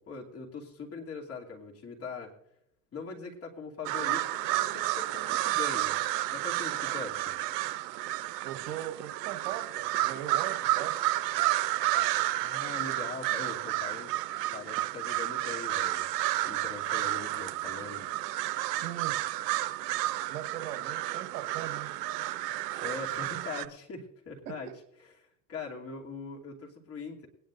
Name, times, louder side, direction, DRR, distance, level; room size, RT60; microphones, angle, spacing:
voice 1, 0.0-2.3 2.9-6.0 6.3-7.3 12.4-14.1 14.5-16.1 16.4-18.1 22.8-24.7 25.0-27.3, left 4 dB, 30° left, -1 dB, 2.8 m, -41 dB
sound 1, 3.9-23.7, right 15 dB, 75° right, 0.7 m, -31 dB
voice 2, 8.4-11.0 18.7-19.2 20.3-21.9 24.4-24.6, right 12 dB, 55° right, 6 dB, 1.6 m, -39 dB
21.0 x 10.0 x 2.6 m, 0.79 s
hypercardioid pair, 95°, 49 cm